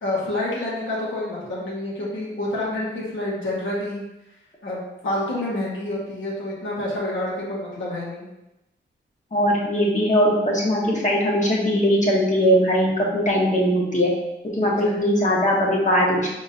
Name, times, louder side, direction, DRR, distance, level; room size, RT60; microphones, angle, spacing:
voice 1, 0.0-4.0 4.6-8.3 14.8-14.9, left 1 dB, 75° left, -6 dB, 1.5 m, -28 dB
voice 2, 9.3-14.1 14.5-16.3, equal, 40° left, -3 dB, 1.3 m, -20 dB
5.0 x 3.7 x 2.8 m, 0.94 s
wide cardioid pair, 85°, 20 cm